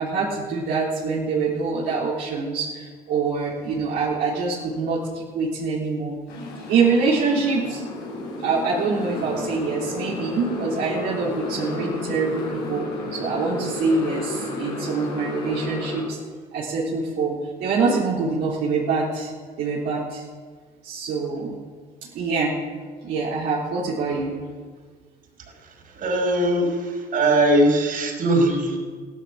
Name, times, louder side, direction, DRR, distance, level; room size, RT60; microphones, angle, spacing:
voice 1, 0.0-6.2 6.7-7.8 8.4-16.2 16.5-19.3 19.6-20.2 20.8-21.6 22.1-22.6 23.0-24.4, right 4 dB, 80° right, -7 dB, 3.6 m, -25 dB
Motorcycle, 6.3-16.0, left 2 dB, 90° left, 5.8 m, -32 dB
voice 2, 25.9-28.8, right 1 dB, 55° right, 1 dB, 5.4 m, -20 dB
16.0 x 12.0 x 7.2 m, 1.6 s
cardioid pair, 110°, 17 cm